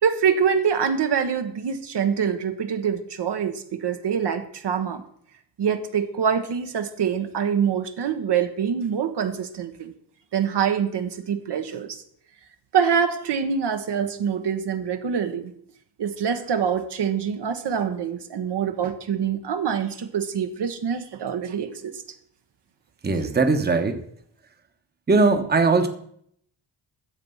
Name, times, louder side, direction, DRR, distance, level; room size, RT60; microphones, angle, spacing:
voice 1, 0.0-5.0 5.6-9.9 10.3-12.0 12.7-15.5 16.0-21.9, right 7 dB, 65° right, 6 dB, 1.2 m, -25 dB
voice 2, 23.0-24.0 25.1-25.9, right 3 dB, 20° right, 6 dB, 1.1 m, -19 dB
11.5 x 7.6 x 5.6 m, 0.67 s
cardioid pair, 115°, 44 cm